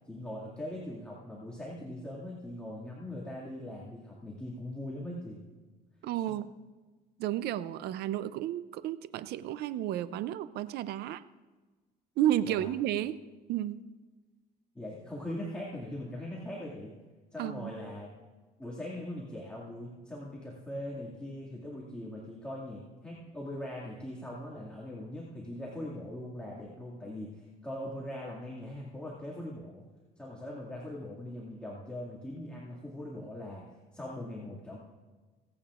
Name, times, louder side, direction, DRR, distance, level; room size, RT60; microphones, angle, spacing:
voice 1, 0.1-5.4 6.3-6.4 12.4-12.7 14.7-16.9 17.3-18.1 18.6-29.8 30.2-34.8, left 1 dB, 5° left, -6 dB, 2.1 m, -41 dB
voice 2, 6.0-6.5 7.2-11.2 12.2-13.2 13.5-13.8 17.4-17.8, right 12 dB, 75° right, 15 dB, 0.5 m, -32 dB
24.5 x 8.8 x 2.5 m, 1.3 s
cardioid pair, 110°, 17 cm